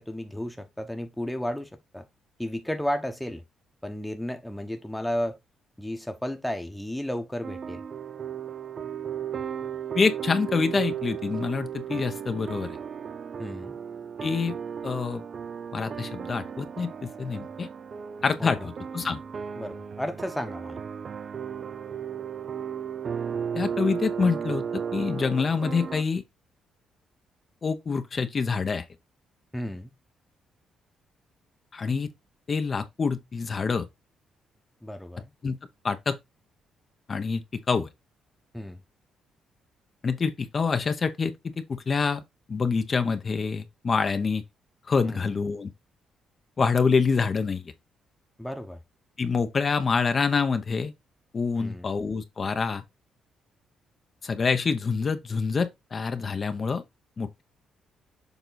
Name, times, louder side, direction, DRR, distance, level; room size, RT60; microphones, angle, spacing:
voice 1, 0.0-2.0 2.4-3.4 3.8-5.4 5.8-7.8 13.4-13.7 18.4-18.7 19.6-20.8 29.5-29.9 34.8-35.3 38.5-38.8 45.0-45.3 48.4-48.8 51.6-51.9, equal, 5° left, 1.0 m, -33 dB
sound 1, 7.4-26.0, right 7 dB, 45° right, 0.4 m, -35 dB
voice 2, 9.9-12.8 14.2-14.6 14.8-15.2 15.7-17.7 18.2-19.2 23.5-26.2 27.6-28.8 31.7-32.1 32.5-33.9 35.4-35.6 35.8-36.2 37.1-37.9 40.0-42.2 42.5-44.4 44.9-45.7 46.6-47.7 49.2-50.9 51.3-52.8 54.2-56.8 57.2-57.4, left 5 dB, 40° left, 0.8 m, -26 dB
7.0 x 3.9 x 4.0 m
cardioid pair, 90°, 0 cm